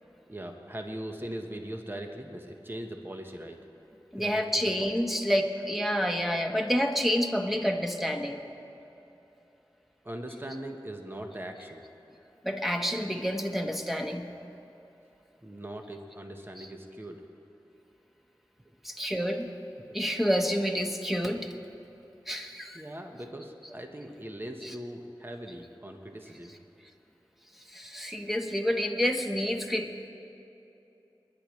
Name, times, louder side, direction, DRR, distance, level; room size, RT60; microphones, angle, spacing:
voice 1, 0.3-3.7 4.2-4.9 10.0-11.9 15.4-17.3 19.8-19.9 22.7-26.5, right 1 dB, 25° right, 3 dB, 1.3 m, -40 dB
voice 2, 4.1-8.4 12.4-14.3 16.6-16.7 18.8-19.5 19.9-21.5 22.3-22.8 23.6-23.7 24.6-24.7 27.7-29.9, equal, ahead, 2 dB, 1.3 m, -29 dB
29.5 x 10.5 x 3.2 m, 3.0 s
wide cardioid pair, 40°, 9 cm